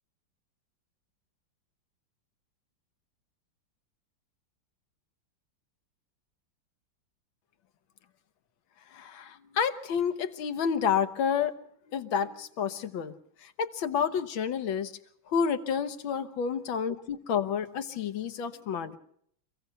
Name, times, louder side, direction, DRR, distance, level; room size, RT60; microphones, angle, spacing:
voice 1, 8.9-11.5 11.9-13.1 13.6-14.9 15.3-19.0, left 7 dB, 80° left, 9 dB, 1.9 m, -29 dB
26.0 x 16.0 x 6.9 m, 0.68 s
omnidirectional pair, 2.1 m